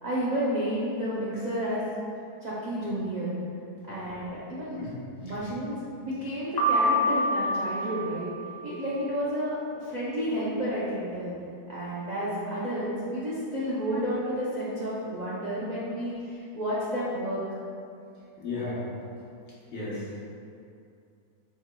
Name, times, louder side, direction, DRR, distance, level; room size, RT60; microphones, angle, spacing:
voice 1, 0.0-1.8 2.4-3.3 3.9-4.8 5.2-8.3 8.6-11.3 11.7-17.4, equal, 55° right, -9 dB, 0.4 m, -31 dB
voice 2, 4.8-5.4 18.4-18.8 19.7-20.0, left 3 dB, 50° left, -8 dB, 1.2 m, -34 dB
Piano, 6.6-8.7, equal, 70° left, 0.3 m, -26 dB
4.6 x 4.1 x 2.2 m, 2.5 s
omnidirectional pair, 1.6 m